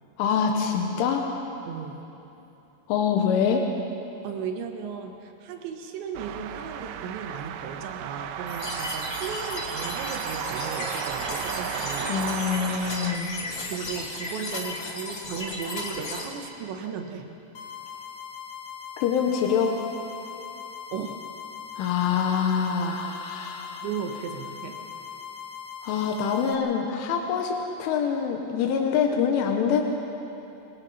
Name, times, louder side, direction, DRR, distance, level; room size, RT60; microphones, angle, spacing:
voice 1, 0.2-1.3 2.9-3.6 12.1-13.4 19.0-19.8 21.8-23.9 25.8-29.8, left 7 dB, 85° left, 2 dB, 3.6 m, -25 dB
voice 2, 1.7-2.0 4.2-12.1 13.7-17.3 20.9-21.2 23.8-24.8, right 6 dB, 75° right, 4 dB, 3.6 m, -36 dB
sound 1, 6.1-13.2, right 9 dB, 90° right, 3.2 m, -34 dB
sound 2, 8.5-16.2, left 2 dB, 35° left, 2.1 m, -35 dB
sound 3, 17.5-26.5, left 7 dB, 60° left, 2.3 m, -40 dB
27.0 x 24.0 x 4.3 m, 3.0 s
omnidirectional pair, 5.5 m